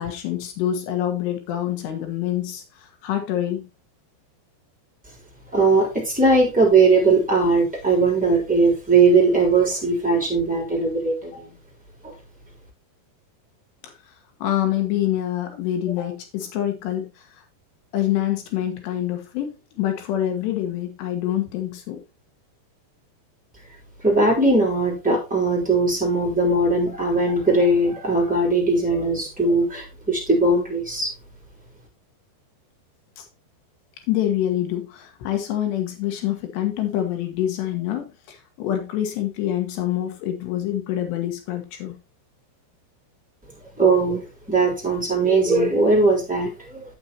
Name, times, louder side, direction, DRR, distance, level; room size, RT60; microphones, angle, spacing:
voice 1, 0.0-3.7 11.3-11.4 13.8-13.9 14.4-17.1 17.9-22.0 33.2-33.3 34.1-42.0, left 12 dB, 80° left, 5 dB, 3.5 m, -26 dB
voice 2, 5.5-11.6 12.0-12.1 24.0-31.1 43.8-46.8, right 3 dB, ahead, -3 dB, 2.7 m, -19 dB
8.9 x 8.5 x 2.9 m, 0.27 s
omnidirectional pair, 4.9 m